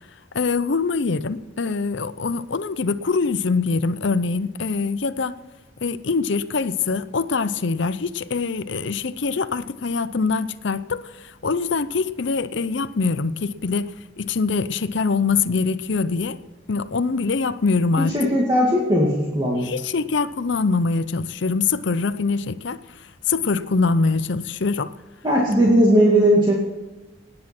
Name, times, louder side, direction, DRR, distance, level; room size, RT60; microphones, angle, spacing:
voice 1, 0.3-5.4 5.8-16.4 16.7-18.3 19.5-24.9 25.6-25.7, left 4 dB, 60° left, 14 dB, 0.6 m, -24 dB
voice 2, 18.1-19.7 25.2-26.5, equal, 20° right, -3 dB, 2.1 m, -17 dB
18.0 x 9.7 x 6.0 m, 1.2 s
head